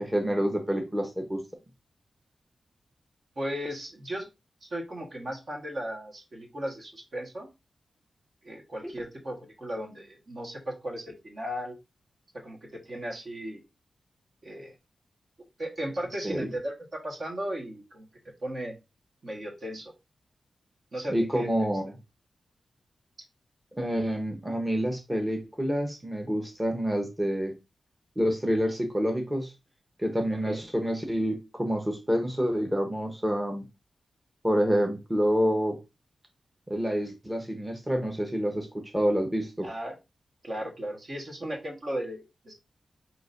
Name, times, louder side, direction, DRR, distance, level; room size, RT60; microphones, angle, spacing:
voice 1, 0.0-1.4 16.2-16.5 21.1-21.9 23.8-27.5 28.2-29.5 30.0-33.6 34.4-35.8 36.7-39.7, equal, 15° right, 3 dB, 1.0 m, -28 dB
voice 2, 3.4-4.3 4.6-7.5 8.4-11.8 12.3-13.6 14.4-14.7 15.6-18.1 18.4-18.7 19.2-19.9 20.9-21.5 30.4-30.6 39.6-40.0 40.4-42.5, equal, 55° right, 0 dB, 1.5 m, -36 dB
5.9 x 2.9 x 2.6 m, 0.25 s
cardioid pair, 60°, 0 cm